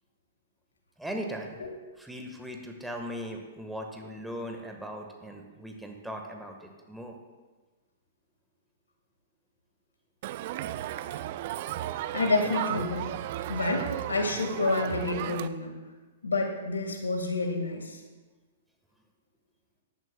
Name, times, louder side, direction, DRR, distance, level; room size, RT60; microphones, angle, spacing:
voice 1, 1.0-1.6 2.0-7.2, equal, 5° right, 2 dB, 1.4 m, -39 dB
Crowd, 10.2-15.5, right 13 dB, 50° right, 0.4 m, -34 dB
voice 2, 12.1-13.1 13.5-15.7 16.2-18.0, left 3 dB, 80° left, 4 dB, 1.7 m, -29 dB
15.5 x 10.5 x 2.2 m, 1.3 s
figure-of-eight pair, 115°, 0 cm